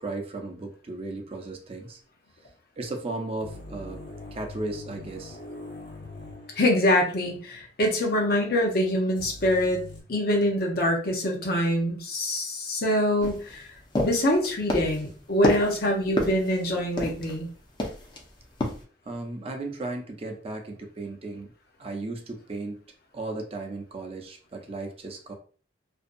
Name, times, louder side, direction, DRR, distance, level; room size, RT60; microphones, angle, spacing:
voice 1, 0.0-2.0 2.8-4.0 4.3-5.4 19.1-21.5 21.8-22.8 23.1-25.3, right 2 dB, 35° right, 3 dB, 0.5 m, -35 dB
sound 1, 3.4-7.2 7.4-7.5 9.1-10.0, left 2 dB, 80° left, 1.2 m, -42 dB
voice 2, 6.6-9.8 10.1-13.6 14.0-17.5, left 1 dB, 60° left, 1 dB, 0.7 m, -24 dB
sound 2, 13.2-17.4 17.8-18.2 18.6-18.8, left 1 dB, 25° left, 0.5 m, -29 dB
2.6 x 2.2 x 2.5 m, 0.41 s
head